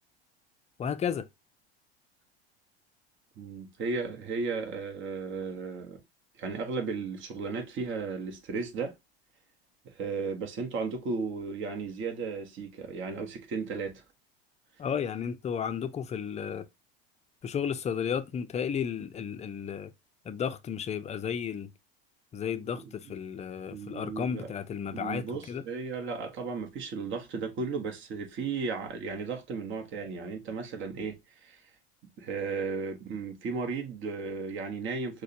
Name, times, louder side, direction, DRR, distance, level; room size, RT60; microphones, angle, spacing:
voice 1, 0.8-1.3 14.8-16.7 17.4-19.9 20.2-21.7 22.3-25.6, left 7 dB, 20° left, 0.5 m, -33 dB
voice 2, 3.4-6.0 6.4-8.9 9.8-14.0 22.7-22.8 23.1-23.2 23.7-24.5 24.9-31.6 32.2-35.2, right 4 dB, 40° right, 1.2 m, -35 dB
6.2 x 2.3 x 2.7 m
hypercardioid pair, 85°, 31 cm